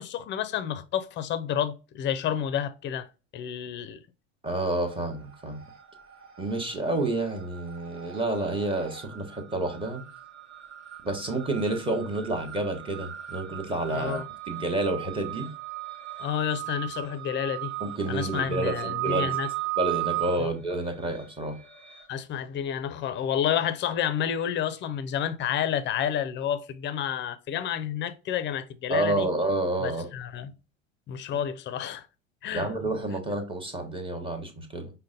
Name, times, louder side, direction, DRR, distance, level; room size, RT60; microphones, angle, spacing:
voice 1, 0.0-3.1 3.3-4.0 13.9-14.3 16.2-17.7 18.1-19.5 20.4-20.5 22.1-29.3 29.8-30.5 31.1-32.0 32.4-32.7, left 9 dB, 30° left, 0.5 m, -30 dB
voice 2, 4.4-5.6 6.4-10.0 11.0-14.2 14.5-15.5 17.8-19.3 19.8-21.5 28.9-30.1 32.5-34.9, right 2 dB, 15° right, 1.1 m, -29 dB
sound 1, 4.5-5.2 5.4-22.0, right 16 dB, 45° right, 1.0 m, -37 dB
5.1 x 2.2 x 3.8 m
hypercardioid pair, 90°, 39 cm